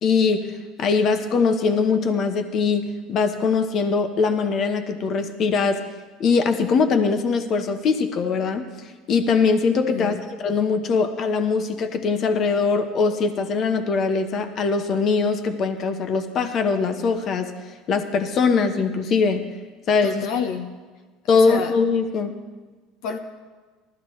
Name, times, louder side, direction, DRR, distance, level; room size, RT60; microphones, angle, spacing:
voice 1, 0.0-5.8 6.2-19.5 19.9-20.3 21.3-22.4, left 5 dB, 45° left, 7 dB, 1.1 m, -22 dB
voice 2, 9.9-10.3 20.0-20.8 21.3-21.8 23.0-23.2, left 6 dB, 70° left, 5 dB, 0.9 m, -29 dB
19.0 x 14.0 x 3.2 m, 1.3 s
supercardioid pair, 115°, 0 cm